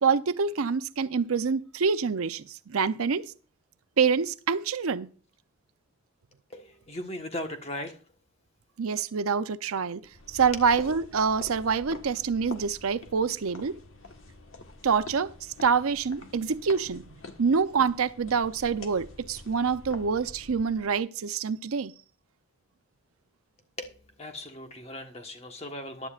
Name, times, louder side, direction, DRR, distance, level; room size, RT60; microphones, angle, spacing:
voice 1, 0.0-3.3 4.0-5.1 8.8-10.0 10.3-13.8 14.8-17.1 17.4-21.9, right 5 dB, 85° right, 0.6 m, -26 dB
voice 2, 6.5-8.0 23.8-26.1, left 1 dB, 30° left, 1.3 m, -38 dB
sound 1, 10.0-20.9, left 2 dB, 70° left, 1.5 m, -46 dB
15.0 x 11.0 x 2.5 m
head